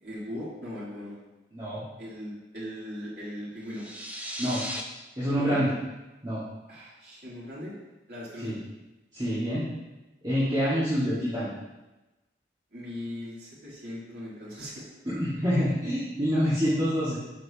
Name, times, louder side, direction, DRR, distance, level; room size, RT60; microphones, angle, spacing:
voice 1, 0.0-1.2 2.0-3.8 5.3-5.6 6.7-7.7 8.1-8.5 12.7-14.8, left 1 dB, 65° right, -8 dB, 3.2 m, -39 dB
voice 2, 1.5-1.8 4.4-4.6 5.2-5.7 6.2-6.4 8.4-8.6 9.1-9.7 10.2-11.5 15.1-17.2, equal, 25° right, -11 dB, 1.9 m, -26 dB
sound 1, 3.7-4.8, equal, 10° right, 0.6 m, -36 dB
11.5 x 6.3 x 2.9 m, 1.1 s
head